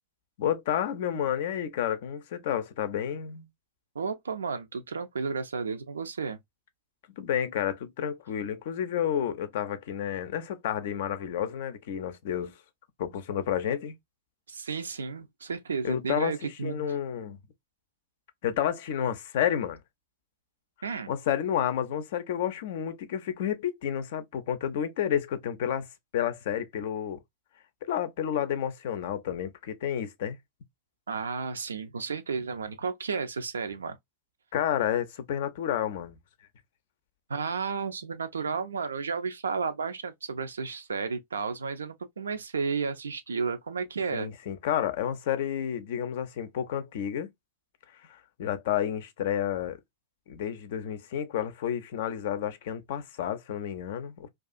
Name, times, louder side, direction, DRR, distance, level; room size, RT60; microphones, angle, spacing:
voice 1, 0.4-3.5 7.2-12.5 13.0-13.9 15.8-17.4 18.4-19.8 21.1-25.9 26.1-27.2 27.8-30.4 34.5-36.2 44.1-47.3 48.4-49.8 50.3-54.3, left 9 dB, 55° left, 0.4 m, -30 dB
voice 2, 4.0-6.4 14.5-16.9 20.8-21.1 31.1-34.0 37.3-44.3, right 5 dB, 70° right, 0.4 m, -32 dB
2.3 x 2.3 x 2.4 m
figure-of-eight pair, 90°, 0 cm